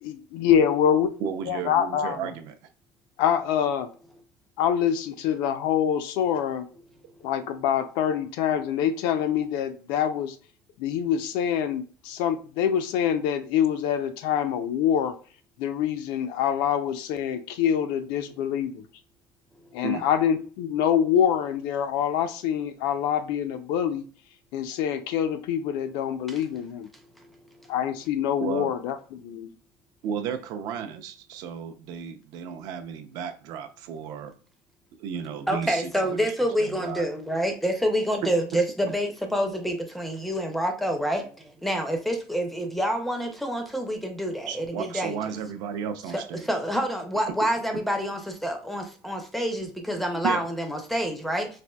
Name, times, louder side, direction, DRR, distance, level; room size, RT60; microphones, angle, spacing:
voice 1, 0.0-1.1 1.5-2.3 3.2-3.9 4.6-6.7 7.2-10.4 10.8-15.1 15.6-18.8 19.7-24.0 24.5-26.9 27.7-29.5, left 9 dB, 75° left, 0.4 m, -25 dB
voice 2, 1.2-2.5 19.8-20.0 28.4-28.7 30.0-34.3 35.0-36.3 36.6-37.1 38.2-38.3 44.5-46.5 50.2-50.4, right 7 dB, 60° right, 0.5 m, -33 dB
voice 3, 35.5-41.3 41.6-45.2 46.1-51.5, equal, ahead, 0.4 m, -27 dB
4.2 x 2.5 x 2.2 m
cardioid pair, 175°, 7 cm